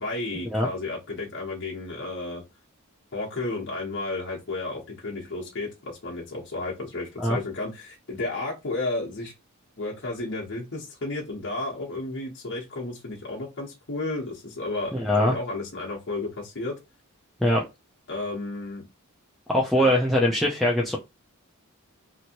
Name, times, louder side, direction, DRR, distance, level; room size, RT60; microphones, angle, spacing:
voice 1, 0.0-2.4 3.1-9.3 9.8-16.8 18.1-18.8 19.7-20.0, left 2 dB, 55° left, -4 dB, 1.0 m, -32 dB
voice 2, 14.9-15.3 17.4-17.6 19.5-21.0, left 1 dB, ahead, -3 dB, 0.5 m, -22 dB
3.0 x 2.6 x 2.9 m, 0.24 s
head